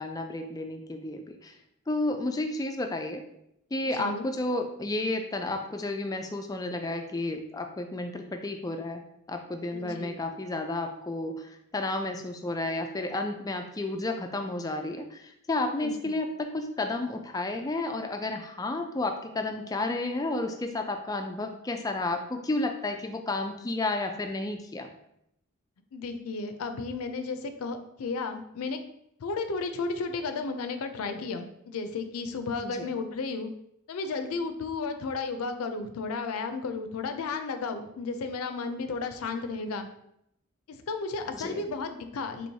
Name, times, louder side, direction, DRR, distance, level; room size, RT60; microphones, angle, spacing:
voice 1, 0.0-1.5 1.9-3.2 3.7-9.0 9.3-24.9 32.6-32.9 41.3-41.6, left 2 dB, 15° left, 5 dB, 0.3 m, -32 dB
voice 2, 3.9-4.3 9.7-10.1 15.8-16.1 25.9-28.8 29.2-33.5 33.9-39.9 40.7-42.5, left 4 dB, 90° left, 8 dB, 0.4 m, -33 dB
4.5 x 3.0 x 2.7 m, 0.77 s
head